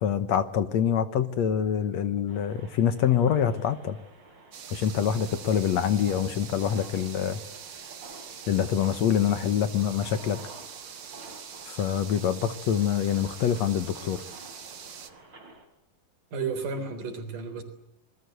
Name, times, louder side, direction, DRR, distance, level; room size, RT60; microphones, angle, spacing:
voice 1, 0.0-4.0 4.7-7.4 8.5-10.4 11.7-14.2, left 8 dB, 65° left, 11 dB, 2.0 m, -25 dB
sound 1, 2.3-15.7, right 3 dB, 30° right, 4.8 m, -50 dB
sound 2, 4.5-15.1, right 7 dB, 50° right, 1.5 m, -44 dB
voice 2, 16.3-17.6, right 5 dB, 65° right, 7 dB, 5.4 m, -32 dB
27.0 x 21.5 x 8.0 m, 0.80 s
omnidirectional pair, 4.0 m